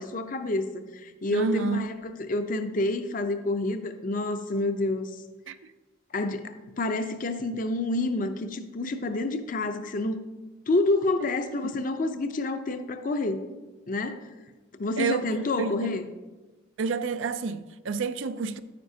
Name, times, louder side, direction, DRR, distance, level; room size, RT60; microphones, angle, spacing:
voice 1, 0.0-5.2 6.1-10.2 10.7-13.4 13.9-14.3 14.8-16.1, left 2 dB, 45° left, 0.5 m, -28 dB
voice 2, 1.3-1.9 5.5-5.7 11.7-11.8 15.0-15.3 15.6-15.9 16.8-18.6, right 4 dB, 85° right, 0.5 m, -29 dB
9.9 x 9.5 x 2.7 m
head